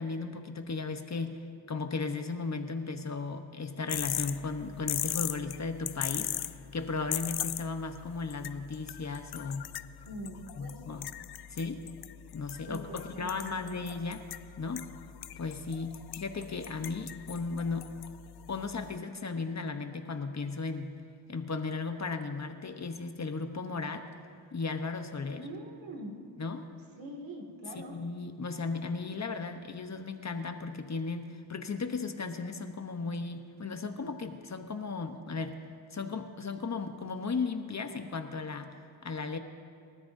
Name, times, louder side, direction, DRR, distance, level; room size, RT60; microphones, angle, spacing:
voice 1, 0.0-1.4 1.7-9.7 10.6-11.1 11.5-11.8 12.3-14.2 14.6-14.9 15.4-17.9 18.5-20.9 21.3-24.1 24.5-25.4 26.4-26.7 27.7-35.6 35.9-39.4, left 4 dB, 35° left, 6 dB, 1.0 m, -36 dB
sound 1, 3.9-19.0, left 12 dB, 55° left, 0.5 m, -40 dB
voice 2, 10.1-11.1 12.7-13.8 25.4-26.2 27.0-28.0, right 1 dB, 70° right, 1 dB, 2.4 m, -44 dB
29.5 x 13.5 x 2.7 m, 2.4 s
cardioid pair, 90°, 46 cm